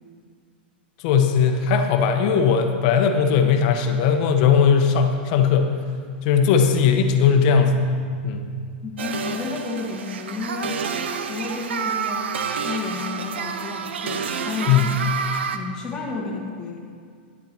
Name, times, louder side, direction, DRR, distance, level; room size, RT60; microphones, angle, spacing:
voice 1, 1.0-5.8 6.2-7.9 8.2-8.5 14.7-14.9, left 6 dB, 45° left, 5 dB, 1.2 m, -18 dB
voice 2, 8.8-12.3 12.6-14.9 15.5-16.8, left 4 dB, 15° left, -4 dB, 1.5 m, -32 dB
sound 1, 9.0-15.6, right 6 dB, 90° right, 0.8 m, -29 dB
11.5 x 9.9 x 4.4 m, 2.1 s
supercardioid pair, 150°, 6 cm